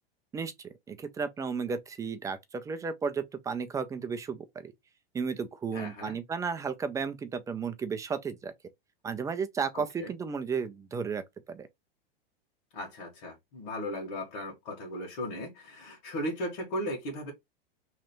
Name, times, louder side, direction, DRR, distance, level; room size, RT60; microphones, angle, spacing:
voice 1, 0.3-4.7 5.1-8.5 9.0-11.2 11.5-11.7, right 5 dB, 10° right, 0.4 m, -33 dB
voice 2, 5.7-6.2 9.7-10.1 12.7-17.3, equal, 50° left, 1.7 m, -37 dB
3.2 x 2.4 x 4.4 m
hypercardioid pair, 130°, 30 cm